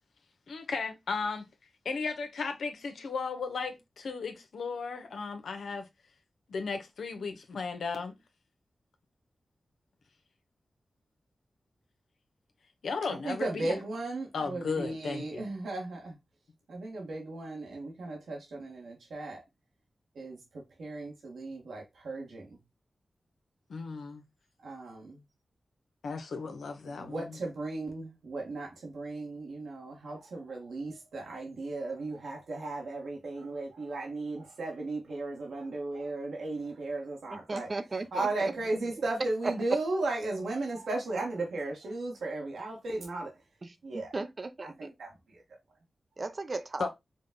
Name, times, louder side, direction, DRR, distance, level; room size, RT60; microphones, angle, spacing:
voice 1, 0.5-1.5 1.8-5.9 6.5-8.2 12.8-13.8 14.3-15.5 23.7-24.2 26.0-27.4 46.8-46.9, left 4 dB, 85° left, 0.9 m, -35 dB
voice 2, 13.2-16.1 16.7-19.4 20.1-20.4 20.8-22.5 24.6-25.2 27.0-37.7 38.1-43.3 43.8-44.1 44.6-45.1, right 2 dB, 85° right, 1.5 m, -35 dB
voice 3, 37.3-38.5 39.4-39.5 43.6-43.7 44.1-44.9 46.2-46.9, right 3 dB, 50° right, 0.7 m, -36 dB
5.1 x 2.3 x 3.7 m
cardioid pair, 55°, 0 cm